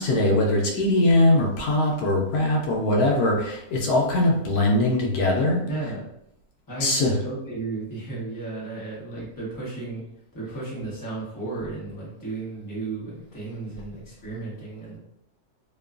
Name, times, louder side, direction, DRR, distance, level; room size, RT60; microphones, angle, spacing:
voice 1, 0.0-5.6 6.8-7.2, left 1 dB, 80° left, 0 dB, 1.1 m, -21 dB
voice 2, 5.6-6.1 6.7-10.0 10.3-15.0, right 3 dB, 15° left, -7 dB, 0.8 m, -34 dB
2.9 x 2.2 x 2.4 m, 0.77 s
omnidirectional pair, 1.6 m